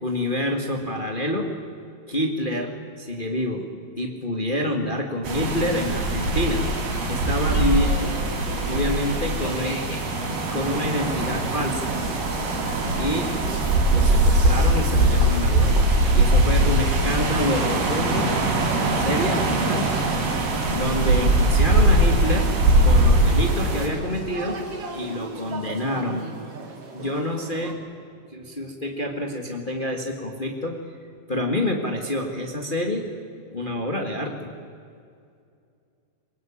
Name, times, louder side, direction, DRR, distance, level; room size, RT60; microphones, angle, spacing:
voice 1, 0.0-1.5 2.1-3.7 4.0-6.6 7.1-8.2 8.6-9.8 10.5-12.0 13.0-13.3 13.9-18.3 18.7-20.2 20.7-22.5 22.8-24.6 24.9-26.2 26.9-27.8 28.3-30.8 31.3-33.0 33.5-34.5, left 1 dB, 30° left, 3 dB, 0.9 m, -27 dB
sound 1, 5.2-23.9, right 1 dB, 80° right, 5.8 m, -21 dB
voice 2, 7.4-8.8 9.4-10.0, equal, 10° left, 1 dB, 3.3 m, -36 dB
sound 2, 11.0-27.7, right 4 dB, 45° right, 2.9 m, -38 dB
23.5 x 20.0 x 8.7 m, 2.4 s
omnidirectional pair, 4.4 m